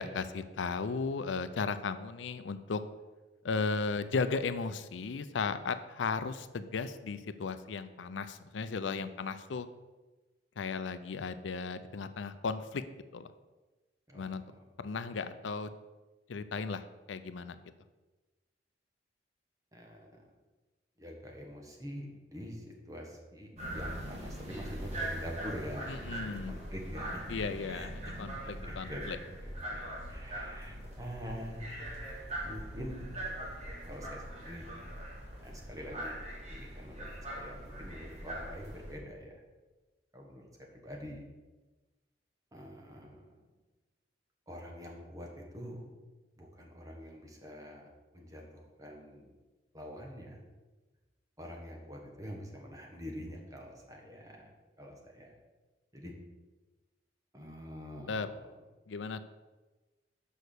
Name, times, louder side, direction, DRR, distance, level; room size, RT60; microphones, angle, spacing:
voice 1, 0.0-2.8 3.4-9.7 10.6-12.8 13.1-13.3 14.1-14.4 14.8-15.7 16.3-17.6 25.9-26.6 27.3-29.2 58.1-58.3 58.9-59.3, left 4 dB, 85° left, 12 dB, 0.5 m, -35 dB
voice 2, 14.1-14.5 19.7-20.2 21.0-27.4 27.7-29.0 29.4-31.8 32.4-33.3 33.8-34.7 35.4-36.2 36.5-39.4 40.1-41.3 42.5-43.4 44.5-45.9 46.4-49.3 49.7-50.4 51.4-55.3 55.9-56.1 57.3-58.5, equal, 20° right, 0 dB, 1.4 m, -46 dB
sound 1, 23.6-39.0, right 1 dB, 35° right, 2.1 m, -41 dB
6.4 x 5.5 x 6.6 m, 1.2 s
head